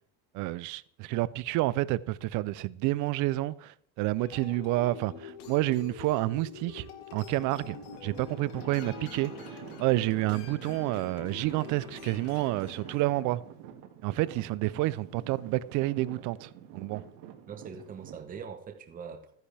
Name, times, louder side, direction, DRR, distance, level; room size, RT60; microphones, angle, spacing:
voice 1, 0.3-6.9 7.1-7.8 8.0-9.3 9.8-13.4 14.0-17.0, right 17 dB, 50° right, 0.5 m, -29 dB
sound 1, 4.2-13.0, left 7 dB, 70° left, 1.9 m, -46 dB
Traffic noise roadway noise / Engine, 7.3-18.2, right 9 dB, 75° right, 1.9 m, -47 dB
voice 2, 17.5-19.3, right 6 dB, 20° right, 0.9 m, -42 dB
14.0 x 10.0 x 3.4 m
cardioid pair, 160°, 38 cm